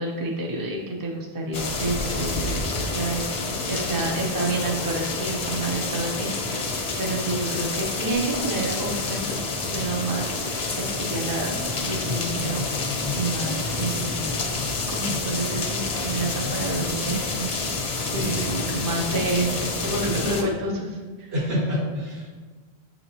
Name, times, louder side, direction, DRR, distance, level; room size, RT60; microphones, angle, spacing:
voice 1, 0.0-3.2 3.7-6.7 7.0-9.4 9.7-11.5 11.8-12.8 13.1-14.4 14.9-17.5 17.9-21.3, right 2 dB, 30° right, 0 dB, 0.4 m, -29 dB
sound 1, 1.5-20.4, left 3 dB, 50° left, 0.5 m, -28 dB
voice 2, 17.9-18.5 21.3-22.3, equal, 70° right, -5 dB, 1.6 m, -28 dB
6.6 x 2.9 x 2.7 m, 1.4 s
omnidirectional pair, 1.1 m